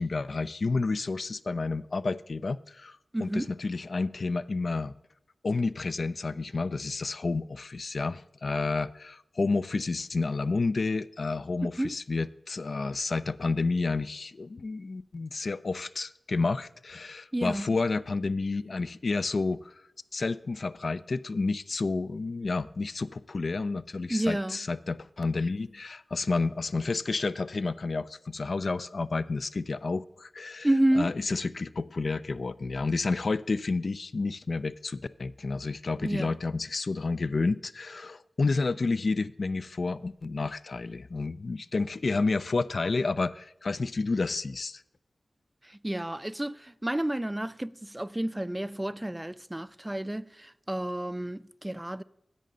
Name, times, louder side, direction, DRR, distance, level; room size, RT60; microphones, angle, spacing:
voice 1, 0.0-4.9 5.4-19.9 20.1-30.7 30.9-44.8, left 3 dB, 65° left, 0.3 m, -30 dB
voice 2, 3.1-3.5 11.6-12.0 17.3-17.7 24.1-24.6 30.6-31.1 36.0-36.4 45.6-52.0, right 1 dB, 15° right, 0.3 m, -30 dB
10.5 x 7.6 x 3.9 m
cardioid pair, 45°, 0 cm